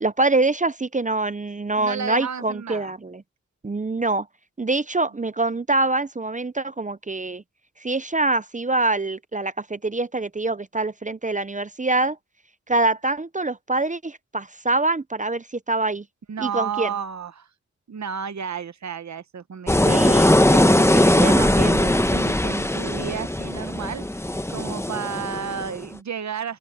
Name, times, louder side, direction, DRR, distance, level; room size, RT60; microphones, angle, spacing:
voice 1, 0.0-3.2 3.6-4.3 4.6-7.4 7.8-12.2 12.7-16.0 16.4-16.9 19.8-20.3 21.2-21.6, right 2 dB, 25° right, 0.6 m, -24 dB
voice 2, 1.8-2.9 16.3-17.5 17.9-24.2 24.5-26.6, right 7 dB, 70° right, 0.9 m, -32 dB
sound 1, 19.7-25.8, left 1 dB, 10° left, 1.0 m, -20 dB
open air
wide cardioid pair, 70°, 29 cm